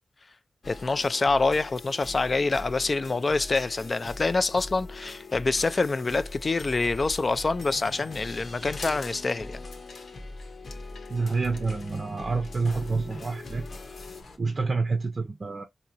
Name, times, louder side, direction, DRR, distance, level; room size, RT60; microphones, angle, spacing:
sound 1, 0.6-14.2, left 2 dB, 50° left, 0.9 m, -41 dB
voice 1, 0.7-9.6, left 3 dB, 35° left, 0.3 m, -26 dB
sound 2, 8.6-14.4, left 3 dB, 80° left, 1.1 m, -47 dB
voice 2, 11.1-13.7 14.4-15.6, right 4 dB, 40° right, 0.5 m, -28 dB
4.9 x 2.7 x 2.8 m
wide cardioid pair, 150°, 0 cm